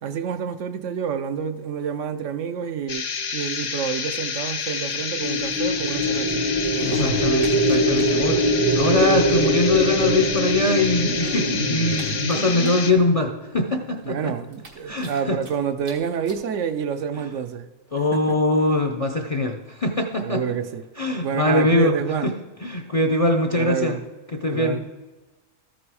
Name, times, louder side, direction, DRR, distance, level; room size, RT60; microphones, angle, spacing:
voice 1, 0.0-6.4 6.8-7.2 14.0-17.7 18.1-18.4 20.2-20.8 21.2-22.3 23.6-24.0 24.5-24.8, right 7 dB, 70° right, 0.9 m, -28 dB
sound 1, 2.9-12.9, left 6 dB, 65° left, 1.2 m, -29 dB
sound 2, 5.0-13.4, right 1 dB, 20° right, 0.6 m, -23 dB
sound 3, 6.6-8.0 8.3-8.4 8.6-8.7 9.7-9.8 10.7-13.0 13.6-13.7 14.0-14.1 14.5-15.5 15.8-15.9 16.3-16.4 17.2-17.3, right 1 dB, 90° right, 2.1 m, -32 dB
voice 2, 6.8-8.4 8.7-14.3 14.9-15.4 17.9-20.4 21.0-21.9 22.2-22.3 22.6-24.0 24.4-24.8, left 2 dB, 45° left, 0.5 m, -22 dB
13.0 x 6.1 x 4.8 m
omnidirectional pair, 1.4 m